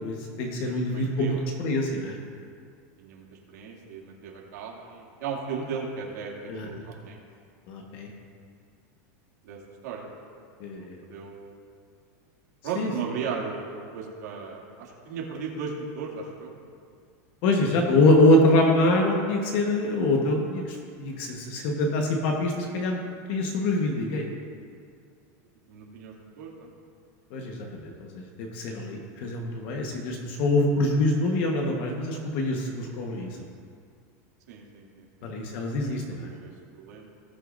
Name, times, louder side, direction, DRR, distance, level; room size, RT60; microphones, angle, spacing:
voice 1, 0.0-2.1 6.5-6.7 7.7-8.1 10.6-11.0 12.7-12.9 17.4-23.0 23.3-24.3 27.3-33.4 35.2-36.3, left 1 dB, 45° left, 1 dB, 1.2 m, -25 dB
voice 2, 0.6-1.4 3.0-7.2 9.4-10.1 10.8-11.6 12.6-16.5 25.7-26.7 34.5-35.1 35.6-35.9 36.3-36.5 36.8-37.1, right 5 dB, 80° right, -2 dB, 2.4 m, -36 dB
19.0 x 8.2 x 2.6 m, 2.2 s
supercardioid pair, 180°, 9 cm